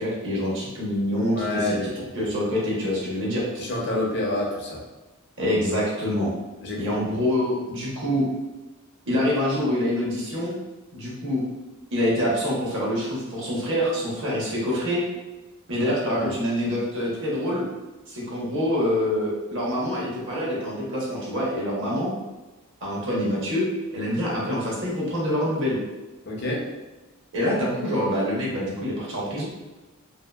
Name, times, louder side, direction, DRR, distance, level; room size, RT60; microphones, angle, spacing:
voice 1, 0.0-1.8 2.2-3.4 5.4-6.3 6.8-8.2 9.1-10.6 10.9-11.4 11.9-15.0 15.7-17.6 18.1-22.1 22.8-23.6 23.9-25.8 27.3-29.4, left 1 dB, 60° right, -5 dB, 0.8 m, -25 dB
voice 2, 1.3-2.3 3.6-4.8 6.6-7.2 16.1-16.3 24.3-24.4 26.3-26.7, left 1 dB, 50° left, -2 dB, 0.6 m, -28 dB
2.7 x 2.7 x 2.2 m, 1.1 s
head